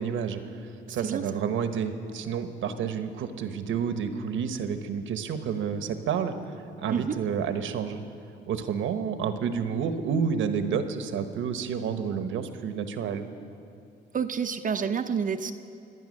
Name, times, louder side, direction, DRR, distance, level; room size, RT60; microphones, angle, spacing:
voice 1, 0.0-6.3 6.8-8.0 8.5-13.3, right 7 dB, 80° right, 8 dB, 1.1 m, -30 dB
voice 2, 0.9-1.2 6.9-7.2 14.1-15.5, right 6 dB, 40° right, 7 dB, 0.6 m, -29 dB
23.5 x 9.1 x 6.4 m, 2.5 s
cardioid pair, 90°, 20 cm